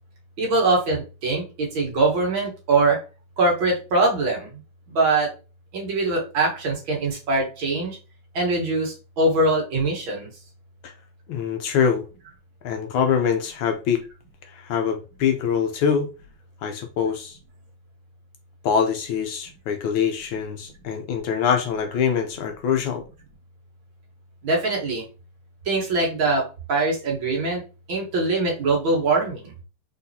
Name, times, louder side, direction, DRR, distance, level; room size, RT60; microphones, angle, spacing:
voice 1, 0.4-3.0 3.4-4.5 4.9-5.3 5.7-8.0 8.3-10.3 24.4-25.0 25.7-27.6 27.9-29.5, right 2 dB, 65° right, 2.1 m, -22 dB
voice 2, 11.3-12.1 12.6-14.0 14.5-16.1 16.6-17.4 18.6-23.0, left 7 dB, 70° left, 1.3 m, -24 dB
4.1 x 4.0 x 2.7 m
omnidirectional pair, 2.4 m